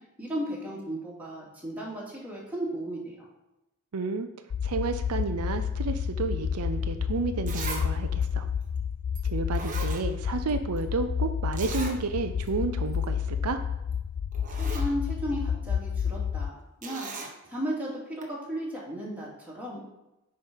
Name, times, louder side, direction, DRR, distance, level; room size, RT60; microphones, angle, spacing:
voice 1, 0.2-3.3 14.5-17.1 17.4-19.9, equal, 5° right, -6 dB, 2.7 m, -35 dB
voice 2, 3.9-4.3 4.6-8.5 9.2-13.6, right 4 dB, 80° right, 8 dB, 0.6 m, -31 dB
sound 1, 4.5-16.5, left 7 dB, 55° left, 0.3 m, -30 dB
Zipper (clothing), 6.9-7.0 7.5-7.9 8.2-8.3 9.2-9.3 9.5-10.5 10.8-10.9 11.5-12.0 12.4-12.5 12.9-13.1 13.9-14.0 14.3-14.9 16.8-17.3 18.2-18.3, right 4 dB, 35° right, 1.2 m, -38 dB
9.1 x 5.1 x 5.6 m, 0.94 s
head